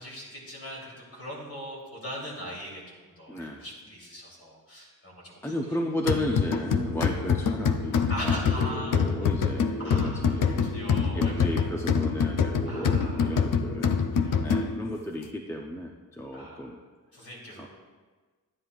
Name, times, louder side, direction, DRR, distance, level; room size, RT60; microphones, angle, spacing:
voice 1, 0.0-5.6 6.6-6.7 8.1-9.3 9.8-11.5 12.6-13.8 14.1-14.5 16.3-16.8 17.1-17.7, equal, 45° left, -4 dB, 3.0 m, -40 dB
voice 2, 3.3-3.6 5.4-10.6 11.1-16.8 17.6-17.7, equal, 10° left, 0 dB, 0.5 m, -34 dB
sound 1, 6.1-15.0, left 6 dB, 70° left, 0.6 m, -26 dB
12.5 x 9.6 x 2.4 m, 1.4 s
wide cardioid pair, 135°, 33 cm